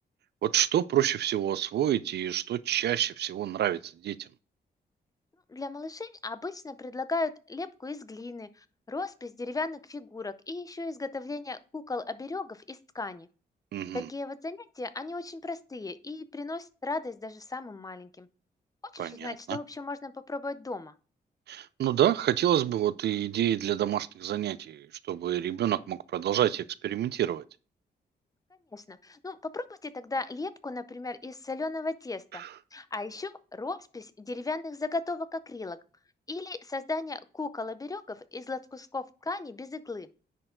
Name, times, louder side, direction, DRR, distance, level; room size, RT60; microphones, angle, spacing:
voice 1, 0.4-4.2 13.7-14.1 19.0-19.6 21.5-27.4 32.4-32.5, right 11 dB, 75° right, 0.4 m, -28 dB
voice 2, 5.5-13.3 13.9-18.3 18.9-20.9 28.7-32.4 32.7-35.8 36.3-40.1, left 3 dB, 20° left, 0.6 m, -36 dB
9.9 x 4.5 x 3.8 m
cardioid pair, 115°, 17 cm